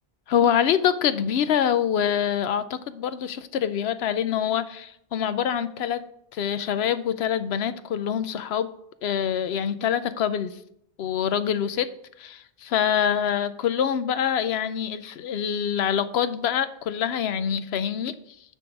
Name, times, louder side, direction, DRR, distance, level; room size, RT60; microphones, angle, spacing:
voice 1, 0.3-6.0 6.3-8.7 9.0-10.6 11.0-11.9 12.2-18.1, left 8 dB, 90° left, 13 dB, 0.9 m, -25 dB
9.7 x 3.7 x 6.0 m, 0.74 s
omnidirectional pair, 1.0 m